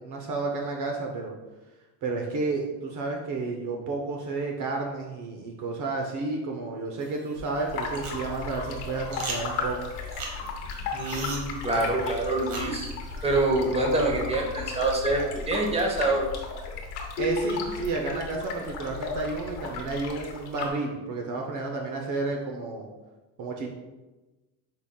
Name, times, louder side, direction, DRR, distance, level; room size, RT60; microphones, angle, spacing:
voice 1, 0.0-1.3 2.0-9.8 17.2-22.9 23.4-23.7, right 3 dB, 50° right, 1 dB, 0.8 m, -31 dB
sound 1, 7.0-13.4, right 2 dB, 85° right, 1.4 m, -40 dB
sound 2, 7.7-20.7, left 4 dB, 75° left, 1.1 m, -36 dB
voice 2, 10.9-12.9 13.2-16.2, right 2 dB, 15° right, 0 dB, 1.0 m, -26 dB
sound 3, 17.2-18.9, left 2 dB, 45° left, 0.7 m, -33 dB
5.9 x 3.6 x 2.3 m, 1.1 s
supercardioid pair, 100°, 38 cm